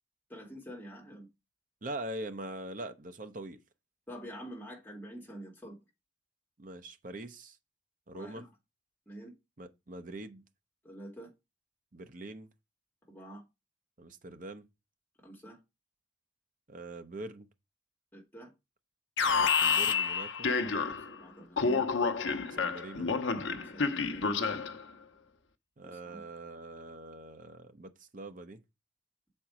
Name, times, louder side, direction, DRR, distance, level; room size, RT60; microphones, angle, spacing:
voice 1, 0.3-1.3 4.1-5.8 8.1-8.5 9.1-9.3 10.8-11.3 13.1-13.4 15.2-15.6 18.1-18.5 21.1-21.8 23.7-24.4 25.8-26.2, right 1 dB, 10° left, 2.2 m, -46 dB
voice 2, 1.8-3.6 6.6-7.6 8.1-8.4 9.6-10.4 11.9-12.5 14.0-14.7 16.7-17.5 19.4-20.5 22.5-23.1 25.8-28.6, right 1 dB, 45° right, 0.8 m, -43 dB
Alarm, 19.2-21.2 21.6-24.8, left 5 dB, 70° left, 0.8 m, -29 dB
6.9 x 4.5 x 5.0 m
head